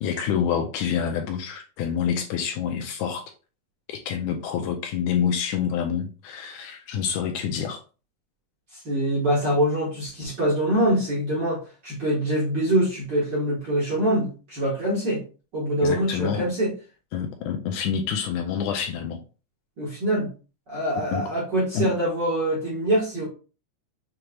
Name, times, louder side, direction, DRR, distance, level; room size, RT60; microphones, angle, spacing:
voice 1, 0.0-3.3 3.9-7.8 15.8-16.5 17.1-19.2 21.1-21.2 21.7-21.9, left 8 dB, 80° left, 4 dB, 1.9 m, -27 dB
voice 2, 8.7-15.2 15.5-16.7 19.8-20.3 20.7-23.3, right 1 dB, 50° right, -6 dB, 1.4 m, -24 dB
6.5 x 2.9 x 2.3 m, 0.34 s
omnidirectional pair, 3.8 m